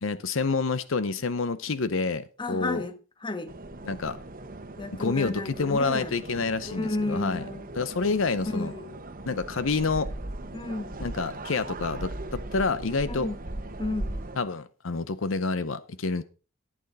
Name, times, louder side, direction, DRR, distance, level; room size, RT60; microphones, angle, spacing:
voice 1, 0.0-2.8 3.9-4.2 4.9-7.4 7.7-8.7 9.3-10.1 11.0-13.3 14.4-16.2, left 4 dB, 70° left, 0.7 m, -28 dB
voice 2, 2.4-2.9 3.2-3.5 4.8-6.1 6.7-7.7 8.5-9.0 10.5-11.0 13.1-13.4 13.8-14.2, left 2 dB, 25° left, 1.3 m, -32 dB
sound 1, 3.5-14.4, right 2 dB, 45° right, 1.1 m, -39 dB
14.5 x 8.9 x 4.0 m
head